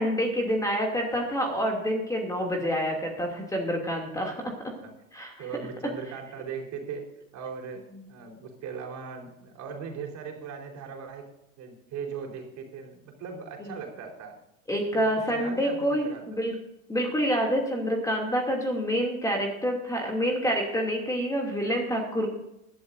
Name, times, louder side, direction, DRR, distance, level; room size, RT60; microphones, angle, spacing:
voice 1, 0.0-4.5 5.1-5.5 13.6-13.7 14.7-16.6 16.9-22.3, equal, 10° left, 1 dB, 2.7 m, -27 dB
voice 2, 5.4-7.1 7.3-11.3 11.6-14.4 14.9-16.3, right 6 dB, 40° right, 1 dB, 4.3 m, -39 dB
20.5 x 12.0 x 2.7 m, 0.87 s
hypercardioid pair, 100°, 42 cm